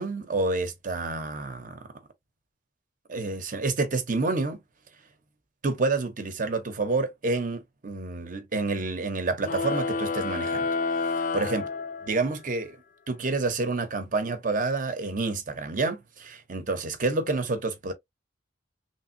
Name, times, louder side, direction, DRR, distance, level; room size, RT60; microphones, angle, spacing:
voice 1, 0.0-1.9 3.1-4.6 5.6-11.0 11.3-11.6 12.1-12.8 13.1-17.9, right 3 dB, 45° right, 0.8 m, -28 dB
sound 1, 9.4-12.4, left 4 dB, 45° left, 0.4 m, -29 dB
3.3 x 2.6 x 2.6 m
head